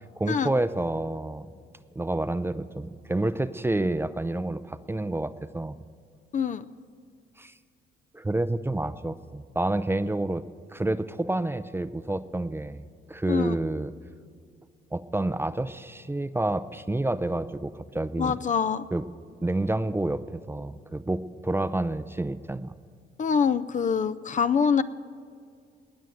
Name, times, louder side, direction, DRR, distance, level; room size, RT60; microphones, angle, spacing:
voice 1, 0.2-1.5 2.0-5.8 7.4-7.5 8.1-10.4 10.7-13.9 14.9-18.4 18.9-19.0 19.4-22.7, right 2 dB, 10° right, 13 dB, 0.5 m, -29 dB
voice 2, 6.3-6.7 13.3-13.6 18.2-18.8 23.2-24.8, left 6 dB, 40° left, 13 dB, 0.5 m, -24 dB
19.0 x 6.4 x 9.1 m, 2.2 s
cardioid pair, 90°, 20 cm